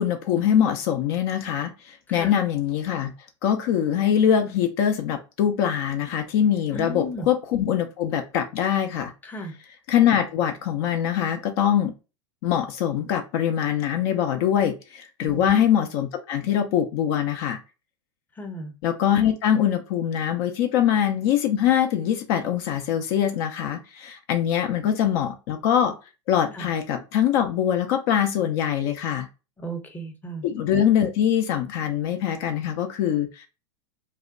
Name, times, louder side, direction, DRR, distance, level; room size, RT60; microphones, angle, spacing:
voice 1, 0.0-3.1 3.4-9.1 9.9-11.9 12.4-17.6 18.8-25.9 26.3-29.3 30.4-33.5, left 9 dB, 55° left, 6 dB, 0.5 m, -23 dB
voice 2, 6.7-7.3 9.2-9.5 15.2-15.5 18.4-18.7 26.5-26.7 29.6-30.4, equal, 10° left, 4 dB, 0.6 m, -34 dB
2.7 x 2.1 x 2.4 m, 0.30 s
hypercardioid pair, 95°, 15 cm